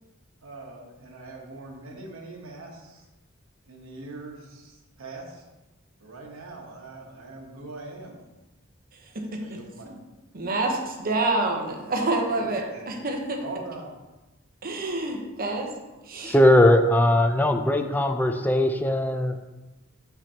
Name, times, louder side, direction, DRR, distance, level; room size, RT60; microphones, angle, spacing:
voice 1, 0.4-3.1 3.7-5.4 6.0-8.3 9.4-9.9 12.3-12.8 13.4-14.0, right 3 dB, 85° right, -1 dB, 1.1 m, -42 dB
voice 2, 8.9-10.0 10.3-13.4 14.6-15.7 16.0-16.3, right 2 dB, 45° right, 2 dB, 0.9 m, -28 dB
voice 3, 16.2-19.4, left 1 dB, 10° left, 6 dB, 0.4 m, -19 dB
5.8 x 5.8 x 2.8 m, 1.1 s
head